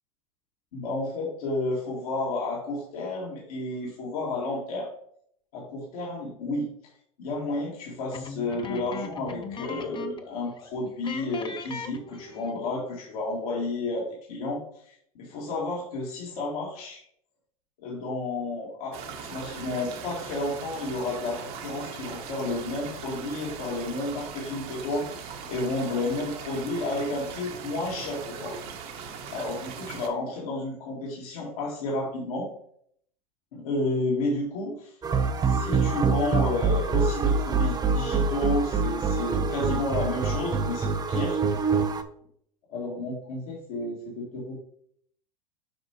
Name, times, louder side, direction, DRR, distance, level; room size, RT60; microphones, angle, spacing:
voice 1, 0.7-4.9 5.5-6.7 7.2-17.0 17.8-28.6 29.3-32.5 33.5-34.9 35.5-41.4 42.7-44.6, left 2 dB, 70° left, -3 dB, 2.2 m, -31 dB
sound 1, 8.1-10.3 10.6-10.7 11.0-12.7, left 5 dB, 25° left, 0.8 m, -38 dB
sound 2, 18.9-30.1, right 6 dB, 55° right, 1.4 m, -40 dB
sound 3, 35.0-42.0, right 4 dB, 20° right, 0.7 m, -25 dB
8.5 x 5.4 x 2.9 m, 0.64 s
hypercardioid pair, 90°, 19 cm